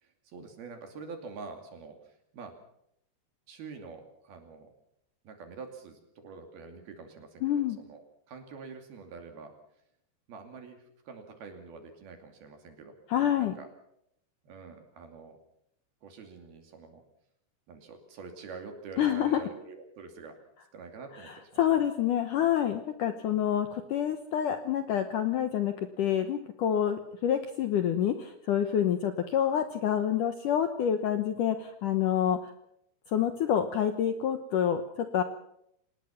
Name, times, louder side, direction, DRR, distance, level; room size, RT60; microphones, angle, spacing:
voice 1, 0.0-2.6 3.5-4.7 5.2-8.0 8.3-9.5 10.3-13.0 13.4-13.7 14.4-15.4 16.0-17.0 17.7-20.4 20.7-21.5 21.8-21.9, right 4 dB, 60° right, 5 dB, 4.3 m, -46 dB
voice 2, 7.4-7.8 13.1-13.5 19.0-19.4 21.2-32.5 33.1-35.2, left 9 dB, 80° left, 8 dB, 1.8 m, -27 dB
26.5 x 19.5 x 5.9 m, 0.75 s
omnidirectional pair, 5.4 m